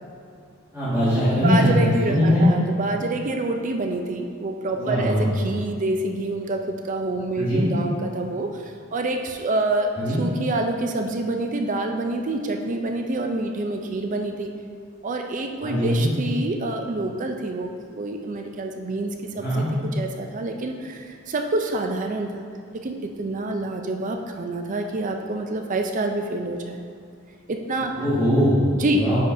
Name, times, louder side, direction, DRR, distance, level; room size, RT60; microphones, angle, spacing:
voice 1, 0.7-2.5 4.8-5.5 7.3-7.7 10.0-10.2 15.6-16.1 19.4-19.7 28.0-28.6 28.9-29.2, equal, 10° right, -13 dB, 1.7 m, -21 dB
voice 2, 1.4-14.5 15.0-22.3 22.7-26.8 27.5-27.9 28.7-29.2, right 2 dB, 40° right, 4 dB, 0.4 m, -27 dB
9.9 x 5.2 x 2.6 m, 2.3 s
head